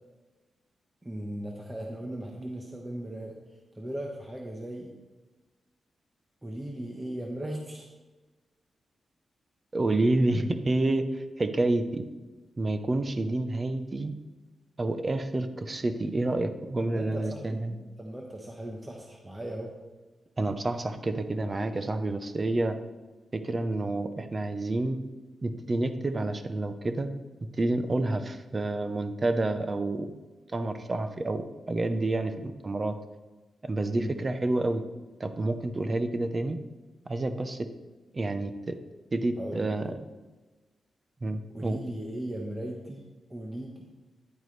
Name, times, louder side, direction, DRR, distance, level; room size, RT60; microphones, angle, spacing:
voice 1, 1.0-3.3 3.7-4.9 6.4-7.9 16.8-19.8 33.9-34.2 39.4-39.7 41.5-43.8, right 1 dB, 15° right, 0 dB, 1.1 m, -37 dB
voice 2, 9.7-12.0 12.6-14.1 14.8-17.7 20.4-22.7 23.3-25.0 25.4-27.1 27.6-30.1 30.5-32.9 33.6-34.8 35.2-36.6 37.1-37.7 38.1-38.7 39.1-39.9 41.2-41.8, right 2 dB, 30° right, 9 dB, 0.8 m, -29 dB
10.5 x 9.1 x 3.3 m, 1.2 s
wide cardioid pair, 105°, 0 cm